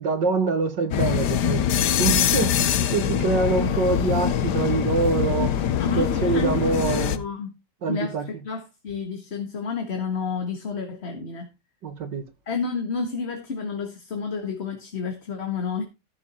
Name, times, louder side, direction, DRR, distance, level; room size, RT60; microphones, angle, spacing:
voice 1, 0.0-7.2 7.8-8.4 11.8-12.2, right 4 dB, 85° right, 2.6 m, -25 dB
sound 1, 0.9-7.2, left 9 dB, 70° left, 1.4 m, -23 dB
voice 2, 5.8-6.5 6.8-7.5 7.9-11.5 12.5-15.8, left 5 dB, 40° left, 1.8 m, -30 dB
13.5 x 7.0 x 4.3 m
omnidirectional pair, 1.9 m